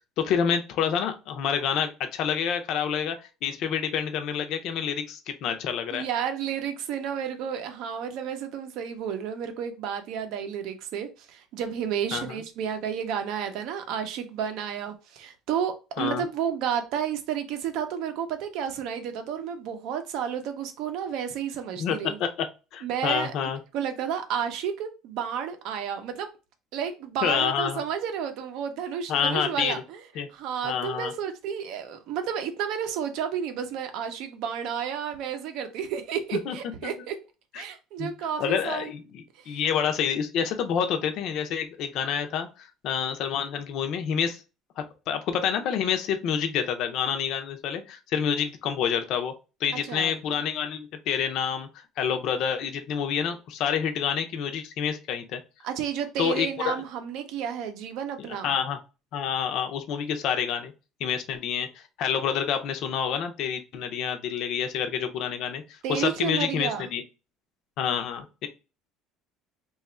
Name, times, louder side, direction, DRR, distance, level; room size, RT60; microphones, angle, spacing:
voice 1, 0.2-3.2 3.4-6.0 12.1-12.4 16.0-16.2 21.8-22.5 22.7-23.6 27.2-27.8 29.1-29.8 30.2-30.3 30.6-31.1 36.3-36.6 36.8-36.9 37.5-37.6 38.0-38.1 38.4-44.4 44.8-49.3 49.6-55.4 56.2-56.8 58.4-58.8 59.1-60.7 61.0-67.0 67.8-68.5, left 8 dB, 45° left, 0.6 m, -28 dB
voice 2, 5.9-22.2 22.8-23.3 23.7-26.3 26.7-30.0 30.3-37.1 37.5-38.9 39.4-39.6 49.7-50.1 55.6-58.5 65.8-66.9, right 8 dB, 55° right, 0.6 m, -31 dB
3.0 x 2.4 x 4.1 m
cardioid pair, 175°, 0 cm